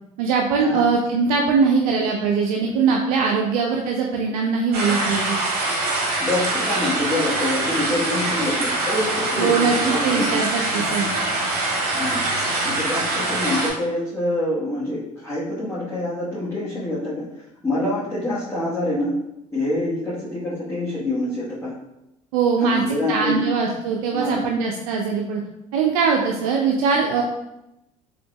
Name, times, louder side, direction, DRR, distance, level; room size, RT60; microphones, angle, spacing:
voice 1, 0.2-5.4 9.4-11.1 22.3-25.4 25.7-27.2, right 5 dB, 80° right, 0 dB, 0.4 m, -21 dB
sound 1, 4.7-13.7, right 2 dB, 60° right, 1.1 m, -24 dB
voice 2, 6.2-10.3 10.7-10.9 11.9-12.3 12.6-17.3 17.6-19.2 19.5-21.7 22.6-23.4 24.1-24.5, left 1 dB, 15° left, -11 dB, 1.3 m, -26 dB
3.7 x 3.3 x 2.3 m, 0.88 s
hypercardioid pair, 70°, 19 cm